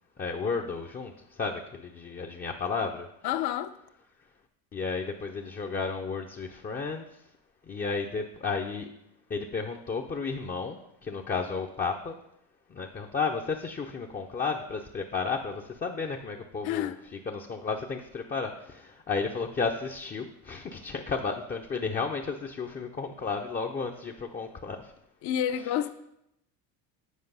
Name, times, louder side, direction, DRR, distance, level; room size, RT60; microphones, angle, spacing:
voice 1, 0.2-3.1 4.7-7.2 7.6-8.9 9.3-12.2 12.7-16.9 17.3-24.9, left 4 dB, 20° left, 0.5 m, -33 dB
voice 2, 3.2-3.8 16.6-17.0 25.2-25.9, left 11 dB, 55° left, 0.7 m, -29 dB
8.2 x 4.6 x 5.4 m
supercardioid pair, 90°, 49 cm